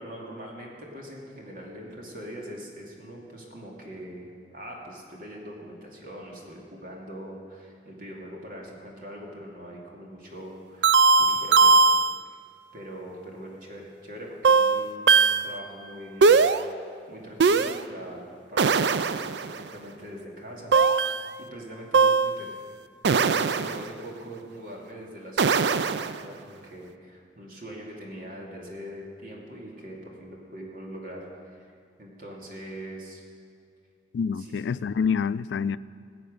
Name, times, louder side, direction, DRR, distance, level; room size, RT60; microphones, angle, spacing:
voice 1, 0.0-11.8 12.7-15.2 15.4-16.4 17.1-18.2 18.5-20.7 21.5-22.5 23.1-31.7 32.0-33.2 34.4-34.6, equal, 50° right, -1 dB, 2.5 m, -42 dB
sound 1, 10.8-12.2 14.4-15.5 16.2-16.6 17.4-17.8 18.6-19.6 20.7-21.3 21.9-22.4 23.0-23.9 25.4-26.2, right 4 dB, 75° right, 0.4 m, -20 dB
voice 2, 34.1-35.8, left 6 dB, 80° left, 18 dB, 0.3 m, -27 dB
19.0 x 7.8 x 6.5 m, 2.3 s
head